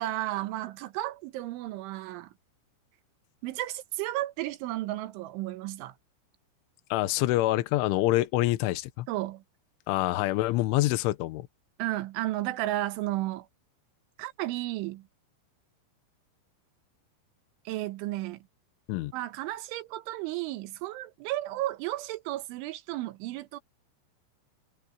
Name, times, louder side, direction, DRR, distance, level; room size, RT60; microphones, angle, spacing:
voice 1, 0.0-2.3 3.4-6.0 9.1-9.4 11.8-13.5 14.2-15.1 17.7-18.4 19.1-23.6, right 16 dB, 75° right, 3.5 m, -33 dB
voice 2, 6.9-9.1 9.9-11.5 18.9-19.1, left 17 dB, 80° left, 3.4 m, -26 dB
omnidirectional pair, 5.7 m